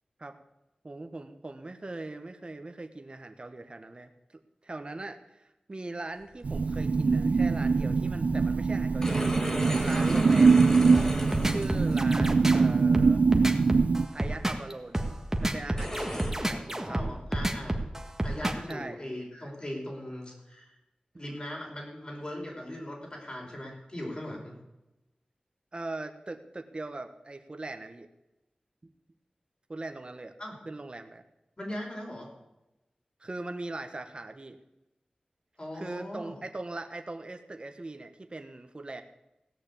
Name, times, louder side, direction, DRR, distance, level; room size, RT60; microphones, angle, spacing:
voice 1, 0.8-9.3 9.7-10.7 11.4-13.2 13.9-15.0 15.4-17.2 18.7-19.0 21.1-21.2 25.7-28.1 29.7-30.3 30.6-31.2 33.2-34.6 35.7-39.0, right 2 dB, 40° right, 6 dB, 1.2 m, -40 dB
sound 1, 6.4-14.1, right 4 dB, 70° right, 0.4 m, -23 dB
sound 2, 6.5-6.7 8.8-12.0 12.8-13.1 13.7-13.8 14.6-14.7 15.7-16.3, equal, 20° left, 4.3 m, -35 dB
sound 3, 10.9-18.7, right 1 dB, 15° right, 1.7 m, -29 dB
voice 2, 16.5-17.8 18.2-20.8 21.1-24.5 30.4-30.6 31.6-32.3 35.6-36.3, left 1 dB, 40° left, -1 dB, 5.3 m, -39 dB
17.0 x 6.5 x 8.5 m, 0.95 s
wide cardioid pair, 55°, 3 cm